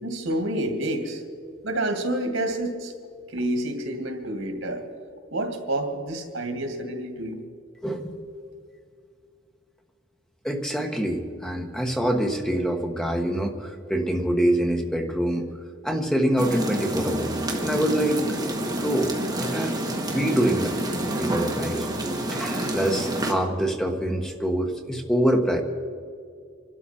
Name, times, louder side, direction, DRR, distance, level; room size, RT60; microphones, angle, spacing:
voice 1, 0.0-1.2 1.6-2.9 3.3-4.8 5.3-7.4, right 1 dB, 90° right, 5 dB, 2.2 m, -28 dB
voice 2, 7.8-8.2 10.4-15.5 15.8-17.3 17.6-19.7 20.1-20.7 21.2-21.9 22.3-25.6, right 1 dB, 5° left, 3 dB, 1.2 m, -25 dB
sound 1, 16.4-23.3, right 1 dB, 20° right, 1.6 m, -28 dB
26.0 x 12.5 x 4.4 m, 2.3 s
head